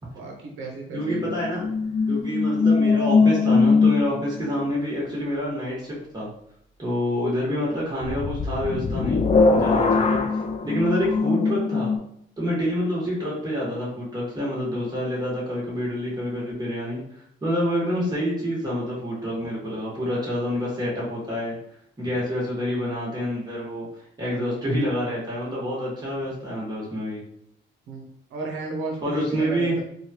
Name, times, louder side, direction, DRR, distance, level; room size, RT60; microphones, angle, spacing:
voice 1, 0.1-1.3 24.3-24.6 27.9-28.0 28.3-29.8, right 2 dB, 90° right, 1 dB, 0.7 m, -33 dB
voice 2, 0.9-1.6 2.1-6.3 6.8-9.2 9.5-10.2 10.6-11.9 12.4-17.0 17.4-21.5 22.0-23.8 24.2-27.2 29.0-29.8, equal, 20° right, -6 dB, 1.3 m, -27 dB
sound 1, 1.0-4.4 8.0-12.0, left 4 dB, 35° left, 0.4 m, -21 dB
3.1 x 2.3 x 2.8 m, 0.71 s
cardioid pair, 90°, 20 cm